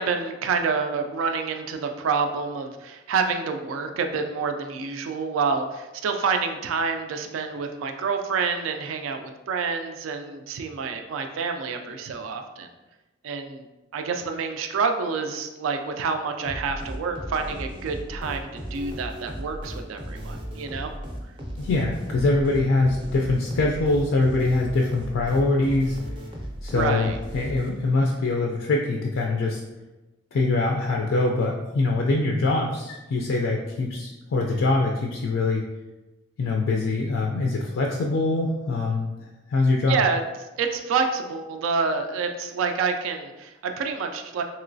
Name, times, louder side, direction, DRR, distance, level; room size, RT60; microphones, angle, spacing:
voice 1, 0.0-12.7 13.2-13.7 13.9-20.9 26.7-27.2 39.9-40.2 40.6-44.4, right 5 dB, 85° right, 6 dB, 0.3 m, -28 dB
sound 1, 16.4-28.0, equal, 25° right, 0.5 m, -36 dB
voice 2, 21.6-26.0 26.6-29.6 30.3-35.6 36.4-39.1 39.5-40.0, left 2 dB, 70° left, 0 dB, 0.3 m, -23 dB
3.0 x 2.9 x 2.6 m, 1.1 s
head